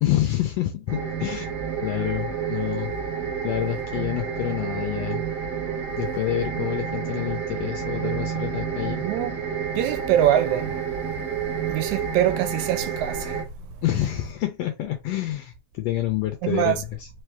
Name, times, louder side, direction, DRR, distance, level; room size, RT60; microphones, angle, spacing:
voice 1, 0.0-1.5 1.8-2.9 3.4-5.3 6.0-9.0 13.8-17.1, left 13 dB, 80° left, 1.5 m, -27 dB
sound 1, 0.9-13.4, right 7 dB, 50° right, 1.2 m, -30 dB
voice 2, 9.0-9.3 9.8-10.8 11.7-13.4 16.4-16.8, right 11 dB, 80° right, 1.8 m, -23 dB
4.6 x 3.1 x 3.4 m
omnidirectional pair, 3.6 m